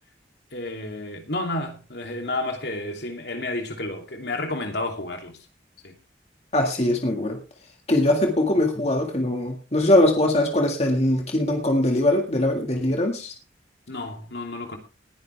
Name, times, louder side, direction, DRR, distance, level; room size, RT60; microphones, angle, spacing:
voice 1, 0.5-5.4 5.8-6.0 13.9-14.8, left 2 dB, 70° left, 3.0 m, -31 dB
voice 2, 6.5-7.4 7.9-13.3, left 1 dB, 35° left, 1.9 m, -21 dB
19.5 x 10.5 x 3.4 m
head